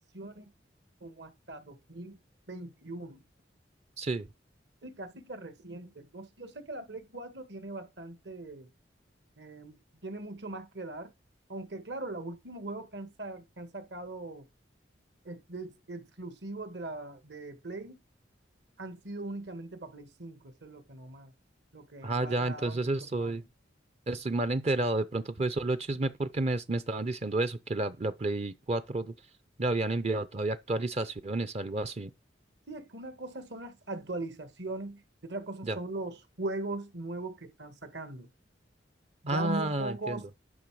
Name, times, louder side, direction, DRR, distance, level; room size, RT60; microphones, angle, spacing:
voice 1, 0.1-0.5 1.0-2.2 2.5-3.2 4.8-8.7 9.4-9.8 10.0-11.1 11.5-14.4 15.2-18.0 18.8-21.3 21.7-22.9 23.2-23.4 32.7-38.3 39.2-40.3, right 2 dB, 65° right, 1.6 m, -40 dB
voice 2, 4.0-4.3 22.0-23.4 24.1-29.1 29.6-32.1 35.6-35.8 39.3-40.2, right 2 dB, 35° right, 0.6 m, -30 dB
11.0 x 5.7 x 4.7 m
head